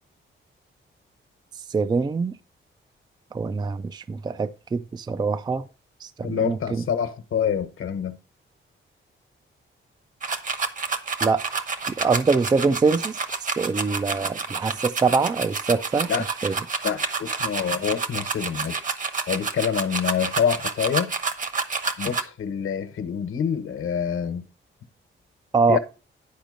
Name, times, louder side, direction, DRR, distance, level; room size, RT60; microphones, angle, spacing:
voice 1, 1.7-2.4 3.3-5.6 6.0-6.8 11.2-11.4 11.9-13.2 13.6-16.1 16.4-16.6 25.5-25.8, right 4 dB, 20° right, 0.4 m, -24 dB
voice 2, 6.2-8.2 16.1-16.2 16.8-18.8 19.3-21.1 22.0-24.4 25.7-25.8, left 8 dB, 75° left, 1.2 m, -26 dB
sound 1, 10.2-22.2, right 4 dB, 40° right, 1.0 m, -29 dB
10.5 x 5.1 x 5.1 m
wide cardioid pair, 145°, 21 cm